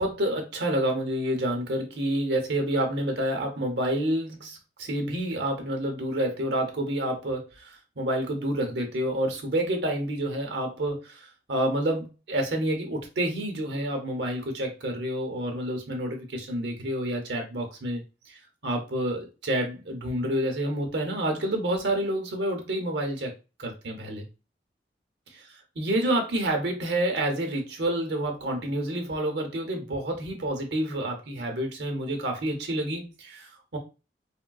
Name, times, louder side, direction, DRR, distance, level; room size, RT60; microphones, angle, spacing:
voice 1, 0.0-11.2 11.5-18.0 18.3-18.4 18.6-23.3 23.6-24.2 25.8-33.8, right 1 dB, 80° right, 3 dB, 0.9 m, -28 dB
3.6 x 2.1 x 2.3 m, 0.30 s
head